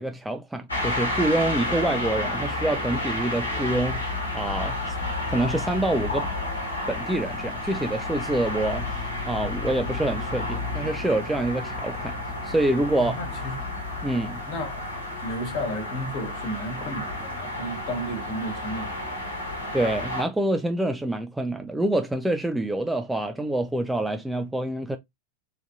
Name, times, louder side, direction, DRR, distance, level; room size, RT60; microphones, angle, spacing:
voice 1, 0.0-4.1 4.3-4.8 5.3-6.3 6.9-8.9 9.3-12.2 12.4-13.1 14.0-14.4 19.7-25.0, right 1 dB, 5° right, 0.3 m, -26 dB
sound 1, 0.7-20.2, left 2 dB, 80° left, 1.2 m, -31 dB
voice 2, 12.9-13.5 14.5-14.9 15.2-19.5, equal, 45° left, 1.3 m, -33 dB
3.6 x 2.6 x 2.5 m
figure-of-eight pair, 90°, 0 cm